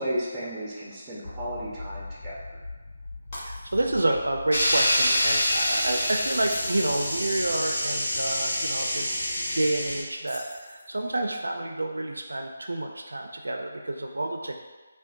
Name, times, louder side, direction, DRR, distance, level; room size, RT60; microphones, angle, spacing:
voice 1, 0.0-2.4, right 1 dB, 10° right, -8 dB, 0.7 m, -33 dB
sound 1, 1.2-6.1, left 3 dB, 85° left, 0.4 m, -42 dB
Shatter, 3.3-4.1 4.5-4.7 6.3-7.2 10.2-11.1, left 1 dB, 25° left, 0.8 m, -44 dB
voice 2, 3.3-9.2 9.5-14.6, right 2 dB, 90° right, 2 dB, 0.4 m, -29 dB
sound 2, 4.5-10.0, left 1 dB, 70° left, 1.0 m, -26 dB
3.7 x 2.2 x 2.5 m, 1.3 s
figure-of-eight pair, 160°, 0 cm